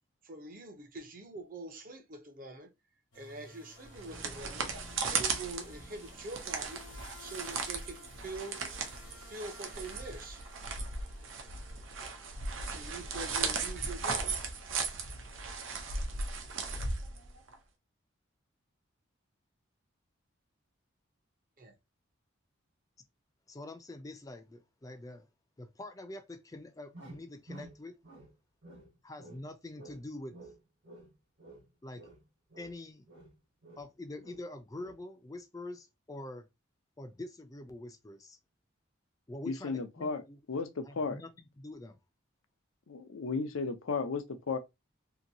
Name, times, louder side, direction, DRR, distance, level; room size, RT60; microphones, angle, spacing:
voice 1, 0.2-2.7 3.1-4.7 5.1-6.8 7.2-8.6 9.2-10.4 12.7-14.4 21.6-21.8, right 2 dB, 45° right, 0.7 m, -44 dB
sound 1, 3.1-15.7, left 2 dB, 70° left, 0.9 m, -56 dB
sound 2, 3.8-17.6, right 4 dB, 80° right, 0.7 m, -37 dB
voice 2, 23.5-25.3 25.6-28.0 29.0-30.4 31.8-32.1 32.6-33.1 33.8-36.5 37.0-38.4 39.3-40.4 40.8-42.0, left 2 dB, 15° left, 0.3 m, -45 dB
sound 3, 26.9-28.3 28.6-29.5 29.7-31.7 31.9-33.9 34.2-34.5 34.7-35.0, right 1 dB, 60° right, 1.1 m, -52 dB
voice 3, 39.5-41.2 42.9-44.6, left 4 dB, 85° left, 0.5 m, -35 dB
2.8 x 2.6 x 2.6 m
head